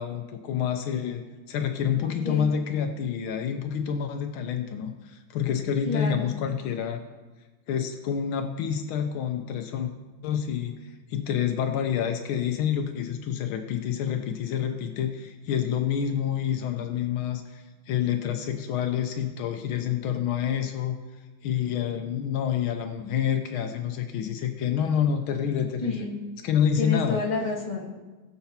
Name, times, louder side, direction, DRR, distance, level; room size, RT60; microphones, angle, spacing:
voice 1, 0.0-7.0 7.7-9.9 10.2-21.0 21.4-26.1 26.4-27.2, left 8 dB, 85° left, 6 dB, 1.5 m, -28 dB
voice 2, 2.0-2.5 5.8-6.2 25.8-26.1 26.8-27.9, left 3 dB, 20° left, -2 dB, 1.6 m, -29 dB
20.0 x 6.9 x 2.8 m, 1.2 s
omnidirectional pair, 2.3 m